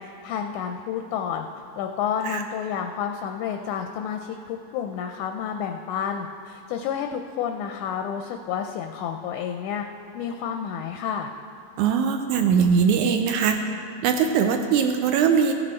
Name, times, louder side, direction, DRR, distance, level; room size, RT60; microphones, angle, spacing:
voice 1, 0.0-1.5 1.8-9.8 10.1-11.3, left 8 dB, 80° left, 5 dB, 1.8 m, -30 dB
voice 2, 11.8-13.6 14.0-15.5, right 6 dB, 80° right, 5 dB, 1.7 m, -21 dB
15.5 x 7.8 x 4.3 m, 2.8 s
omnidirectional pair, 3.9 m